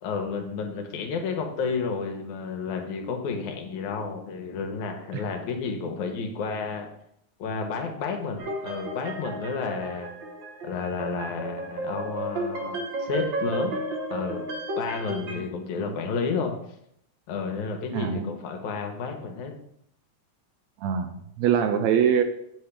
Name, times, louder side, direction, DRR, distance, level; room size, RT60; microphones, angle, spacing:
voice 1, 0.0-6.9 7.4-10.1 10.6-13.7 14.1-14.4 14.8-16.5 17.3-19.5, left 5 dB, 80° left, 3 dB, 2.4 m, -31 dB
sound 1, 8.4-15.4, right 2 dB, 60° right, 1.3 m, -33 dB
voice 2, 15.1-15.4 15.8-15.9 17.9-18.3 20.8-22.2, right 8 dB, 80° right, 7 dB, 1.8 m, -24 dB
7.8 x 7.1 x 3.3 m, 0.74 s
omnidirectional pair, 3.5 m